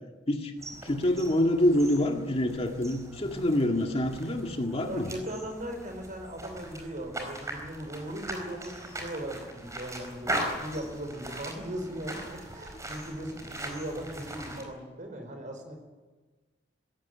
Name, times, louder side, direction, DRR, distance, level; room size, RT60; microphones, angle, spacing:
sound 1, 0.6-14.6, right 1 dB, 15° right, 4.7 m, -40 dB
voice 1, 0.8-5.1, left 1 dB, 30° left, 3 dB, 2.0 m, -26 dB
voice 2, 4.8-15.7, right 1 dB, 45° right, 5 dB, 4.9 m, -38 dB
20.5 x 16.5 x 9.7 m, 1.3 s
head